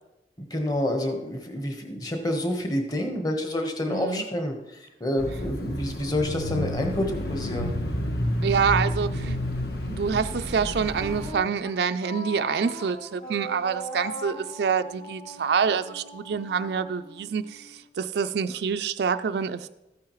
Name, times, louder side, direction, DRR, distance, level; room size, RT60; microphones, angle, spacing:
voice 1, 0.4-7.7, left 1 dB, 20° left, 3 dB, 1.1 m, -28 dB
voice 2, 3.9-4.2 8.4-9.4 9.9-19.7, right 6 dB, 65° right, 10 dB, 0.4 m, -26 dB
Bicycle / Mechanisms, 5.2-11.3, left 1 dB, 60° left, 1.1 m, -30 dB
Wind instrument woodwind instrument, 10.9-17.8, equal, 45° left, 2.9 m, -40 dB
13.5 x 9.4 x 3.1 m, 0.97 s
head